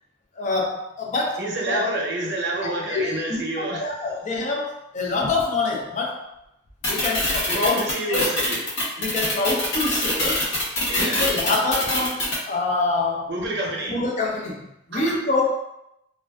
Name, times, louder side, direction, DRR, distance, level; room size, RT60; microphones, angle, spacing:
voice 1, 0.3-1.9 2.6-6.2 6.9-7.8 8.1-8.3 9.0-10.4 10.9-13.3 13.9-15.5, left 3 dB, 40° left, -1 dB, 0.5 m, -26 dB
voice 2, 1.4-3.9 7.5-8.6 10.9-11.3 13.3-13.9 14.9-15.2, right 1 dB, 65° right, -1 dB, 0.6 m, -28 dB
sound 1, 6.8-12.4, left 1 dB, 90° left, 0.9 m, -24 dB
2.4 x 2.3 x 2.2 m, 0.83 s
head